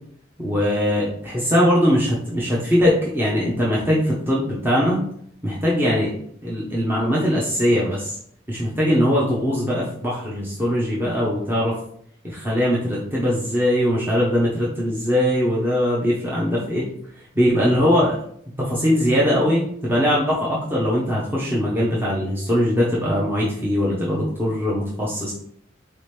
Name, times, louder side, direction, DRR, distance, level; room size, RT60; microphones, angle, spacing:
voice 1, 0.4-5.0 5.4-6.1 6.4-8.2 8.5-11.8 12.2-16.9 17.3-18.2 18.6-25.3, equal, 10° right, -6 dB, 0.7 m, -21 dB
4.1 x 2.9 x 3.3 m, 0.65 s
head